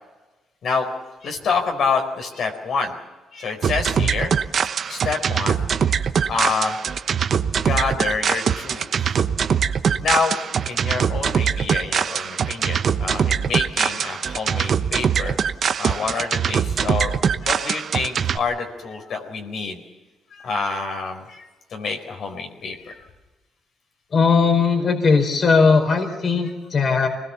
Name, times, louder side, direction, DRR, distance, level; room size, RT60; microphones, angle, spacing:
voice 1, 1.2-2.9 3.3-4.3 4.9-6.7 7.6-9.1 9.6-9.7 10.0-10.4 10.7-15.4 15.8-17.1 17.4-19.8 20.3-21.4 21.7-22.9, left 4 dB, 65° left, 3 dB, 4.4 m, -27 dB
sound 1, 3.6-18.4, right 7 dB, 55° right, 1.0 m, -22 dB
voice 2, 24.1-27.1, left 5 dB, 45° left, 5 dB, 4.2 m, -18 dB
25.0 x 20.0 x 7.1 m, 1.1 s
cardioid pair, 90°, 0 cm